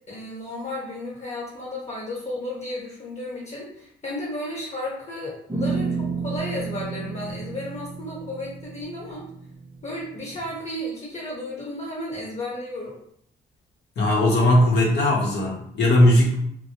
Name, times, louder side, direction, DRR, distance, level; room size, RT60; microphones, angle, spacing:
voice 1, 0.1-9.3 9.8-13.0, left 1 dB, 35° left, -5 dB, 1.0 m, -33 dB
sound 1, 5.5-10.5, right 4 dB, 15° right, 0.6 m, -32 dB
voice 2, 14.0-16.4, left 1 dB, 60° left, -3 dB, 0.7 m, -18 dB
2.2 x 2.0 x 2.8 m, 0.68 s
cardioid pair, 90°, 20 cm